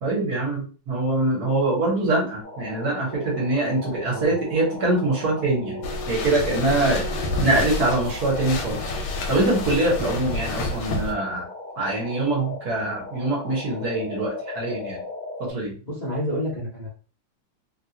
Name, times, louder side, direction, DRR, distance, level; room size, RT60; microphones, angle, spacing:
voice 1, 0.0-7.0 7.4-8.9 9.3-11.5 11.8-15.0 15.4-15.7, right 2 dB, 55° right, -3 dB, 1.4 m, -24 dB
sound 1, 2.4-15.5, left 2 dB, 15° right, 1.1 m, -37 dB
sound 2, 5.8-11.1, left 3 dB, 90° left, 1.5 m, -29 dB
voice 2, 15.9-16.9, equal, 70° left, -6 dB, 0.4 m, -29 dB
3.3 x 2.3 x 2.7 m, 0.36 s
omnidirectional pair, 2.3 m